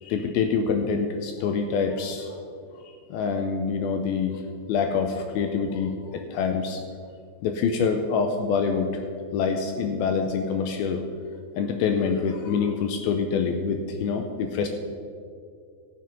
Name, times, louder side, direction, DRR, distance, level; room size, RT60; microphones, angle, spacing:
voice 1, 0.0-2.4 2.7-2.8 3.1-4.4 4.7-6.8 7.4-8.9 9.3-11.0 11.6-14.7, left 5 dB, 80° left, 6 dB, 2.3 m, -26 dB
14.0 x 7.7 x 5.1 m, 2.2 s
omnidirectional pair, 4.9 m